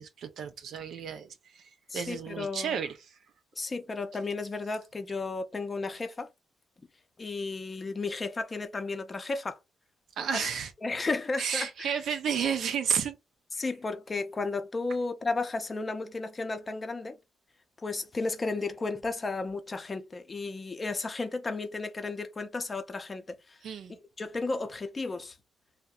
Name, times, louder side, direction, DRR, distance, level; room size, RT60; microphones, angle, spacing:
voice 1, 0.0-3.0 10.2-10.7 11.4-13.2 23.6-24.0, right 7 dB, 70° right, 0.4 m, -32 dB
voice 2, 1.9-2.8 3.6-6.3 7.2-9.6 10.3-10.4 10.8-11.9 13.6-17.2 17.8-23.6 23.9-25.4, left 3 dB, 30° left, 0.5 m, -33 dB
2.7 x 2.0 x 2.3 m
cardioid pair, 85°, 0 cm